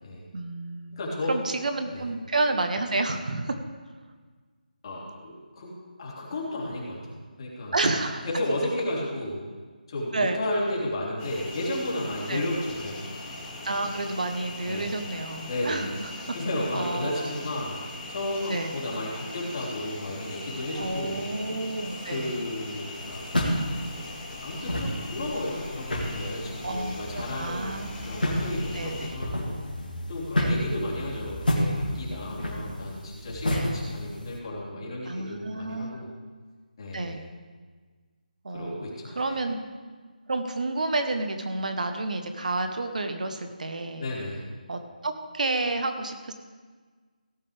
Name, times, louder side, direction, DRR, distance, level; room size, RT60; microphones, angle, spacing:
voice 1, 0.3-1.0 1.3-3.6 7.7-8.3 10.1-10.4 12.3-12.5 13.6-16.4 16.7-17.3 18.5-18.7 20.7-22.3 26.6-28.1 28.7-29.1 30.4-30.6 33.5-33.8 35.0-36.0 36.9-37.2 38.4-38.8 39.1-39.6 40.3-44.1 44.7-46.3, right 2 dB, 55° right, 6 dB, 1.1 m, -30 dB
voice 2, 0.9-1.3 1.9-2.0 4.8-7.8 8.2-9.4 9.9-13.1 14.7-14.9 15.5-15.9 16.3-17.8 18.1-21.3 22.0-23.2 24.4-29.6 30.1-36.1 36.8-37.3 38.5-39.4 44.0-44.5, left 1 dB, 35° left, -5 dB, 3.4 m, -33 dB
sound 1, 11.2-29.1, left 2 dB, 15° left, 2.0 m, -40 dB
sound 2, 22.9-34.4, left 1 dB, 85° left, 2.5 m, -31 dB
17.0 x 8.6 x 3.5 m, 1.5 s
figure-of-eight pair, 155°, 5 cm